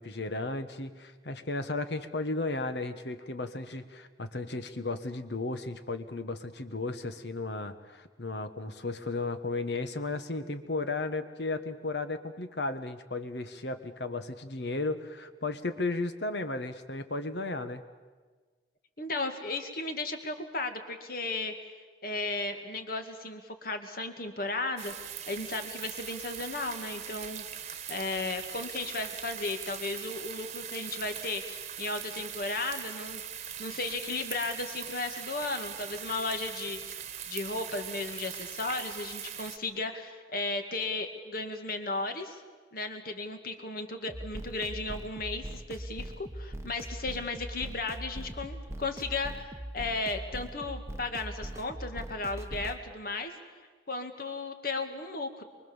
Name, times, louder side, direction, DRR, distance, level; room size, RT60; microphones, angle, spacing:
voice 1, 0.0-17.8, left 2 dB, 65° left, 10 dB, 1.5 m, -34 dB
voice 2, 19.0-21.7 22.0-33.2 33.6-42.4 42.7-53.3 53.9-55.4, left 3 dB, 50° left, 6 dB, 2.2 m, -35 dB
sound 1, 24.8-39.6, right 9 dB, 35° right, 1.4 m, -41 dB
sound 2, 44.1-52.8, right 1 dB, 15° right, 1.0 m, -41 dB
24.5 x 23.5 x 7.3 m, 1.4 s
head